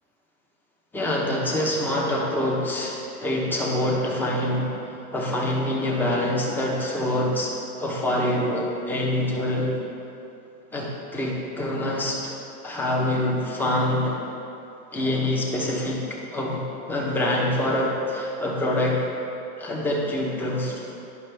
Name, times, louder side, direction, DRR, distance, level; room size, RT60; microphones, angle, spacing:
voice 1, 0.9-4.8 5.1-7.5 7.8-9.8 10.7-12.3 12.6-14.2 14.9-19.0 19.6-20.8, left 1 dB, 5° left, -3 dB, 0.8 m, -25 dB
10.5 x 5.7 x 3.3 m, 2.7 s
supercardioid pair, 145°, 47 cm